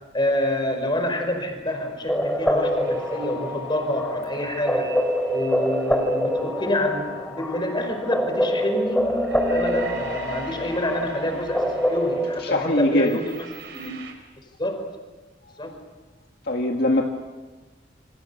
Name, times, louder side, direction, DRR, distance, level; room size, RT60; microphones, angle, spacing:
voice 1, 0.1-4.9 5.3-9.2 9.4-13.4 13.7-13.9 14.6-14.9 15.6-15.7, left 1 dB, 25° left, 5 dB, 4.9 m, -27 dB
sound 1, 2.1-12.4, equal, 5° left, 2.7 m, -26 dB
sound 2, 2.7-6.3 9.0-14.1, right 1 dB, 65° right, 4.5 m, -38 dB
voice 2, 12.4-13.2 15.6-15.7 16.4-17.1, left 1 dB, 60° left, 2 dB, 1.9 m, -22 dB
28.5 x 26.0 x 7.0 m, 1.2 s
head